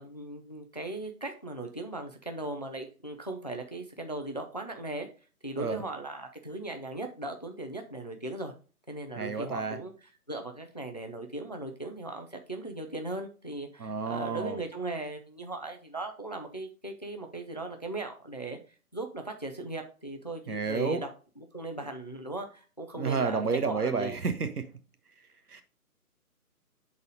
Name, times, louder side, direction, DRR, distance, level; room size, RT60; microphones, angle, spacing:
voice 1, 0.0-5.1 5.4-8.5 8.9-9.9 10.3-18.6 18.9-21.1 21.4-24.2, right 2 dB, 30° left, 0.4 m, -38 dB
voice 2, 9.2-9.8 13.8-14.6 20.5-21.0 23.0-24.7 25.5-25.6, right 5 dB, 80° right, 1.1 m, -30 dB
6.5 x 4.0 x 3.8 m
figure-of-eight pair, 150°, 45 cm